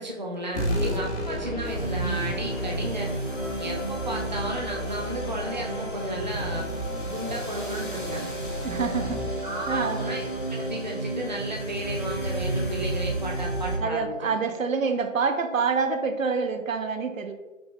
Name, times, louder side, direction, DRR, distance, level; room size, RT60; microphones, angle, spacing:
voice 1, 0.0-3.1 3.6-6.7 7.1-8.3 9.4-14.3, right 1 dB, 35° right, -2 dB, 0.5 m, -33 dB
sound 1, 0.5-11.4, equal, 55° left, 1.2 m, -34 dB
sound 2, 1.8-13.8, right 2 dB, 40° left, 0.5 m, -32 dB
Trumpet, 3.3-10.6, equal, 80° left, 1.4 m, -42 dB
voice 2, 8.6-10.0 13.8-17.3, right 5 dB, 80° right, 8 dB, 0.6 m, -27 dB
5.9 x 2.1 x 3.6 m, 1.2 s
figure-of-eight pair, 170°, 39 cm